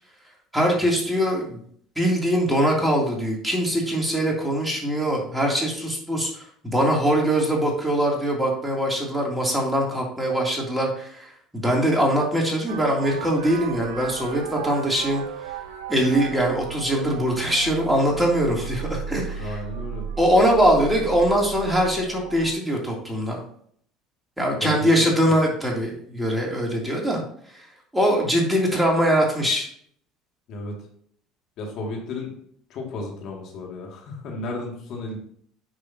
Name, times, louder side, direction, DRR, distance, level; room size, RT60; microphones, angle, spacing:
voice 1, 0.5-1.6 2.0-15.2 15.9-19.6 20.2-23.4 24.4-27.2 27.9-29.7, equal, 5° right, -2 dB, 3.0 m, -22 dB
sound 1, 12.7-22.5, right 6 dB, 85° right, 0.8 m, -35 dB
voice 2, 19.4-20.1 24.6-24.7 25.0-25.1 30.5-30.7 31.6-32.3 32.7-35.2, left 2 dB, 60° left, 0 dB, 2.4 m, -33 dB
9.9 x 6.3 x 2.9 m, 0.62 s
hypercardioid pair, 80°, 0 cm